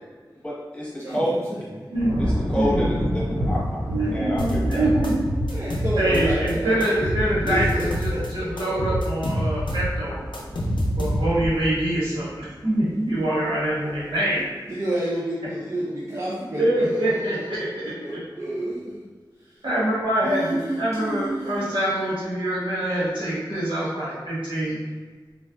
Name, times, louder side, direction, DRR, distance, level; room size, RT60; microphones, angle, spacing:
voice 1, 0.4-1.3 2.5-3.6 4.1-4.9, equal, 15° left, -7 dB, 1.2 m, -28 dB
voice 2, 1.0-1.9 5.5-9.0 14.3-14.4 14.7-19.1 19.4-19.6 20.2-21.8, right 1 dB, 35° right, -6 dB, 0.5 m, -30 dB
sound 1, 1.9-13.2 13.7-14.1, equal, 65° right, 1.2 m, -31 dB
voice 3, 1.9-2.9 3.9-5.1 6.0-10.2 11.0-14.4 16.6-18.2 19.6-24.8, right 1 dB, 85° right, -10 dB, 1.2 m, -25 dB
sound 2, 4.4-6.5 6.8-8.3 8.6-11.5, equal, 75° left, 0.6 m, -26 dB
3.2 x 2.4 x 2.3 m, 1.4 s
cardioid pair, 40°, 8 cm